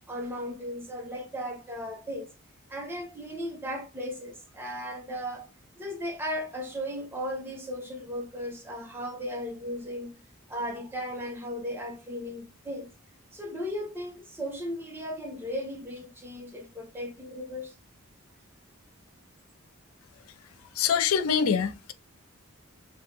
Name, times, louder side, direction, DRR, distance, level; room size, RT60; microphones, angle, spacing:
voice 1, 0.1-2.3 2.7-5.5 5.8-10.1 10.5-12.9 13.3-17.7, equal, 10° right, 0.6 m, -36 dB
voice 2, 20.8-21.9, left 7 dB, 85° left, 0.4 m, -24 dB
2.5 x 2.2 x 2.8 m
head